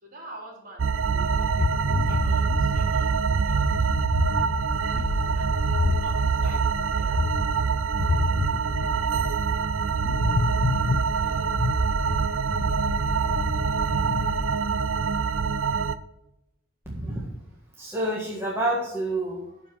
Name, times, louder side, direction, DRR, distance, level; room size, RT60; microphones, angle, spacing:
voice 1, 0.0-3.9 4.9-7.2 11.1-11.5 19.5-19.6, right 1 dB, 45° right, -1 dB, 3.8 m, -46 dB
sound 1, 0.8-16.0, right 5 dB, 70° right, 0.5 m, -25 dB
sound 2, 1.3-14.5, left 4 dB, 40° left, 0.4 m, -30 dB
voice 2, 16.8-17.3 17.8-19.5, right 1 dB, 10° right, -4 dB, 1.6 m, -28 dB
13.0 x 5.0 x 6.0 m, 0.87 s
head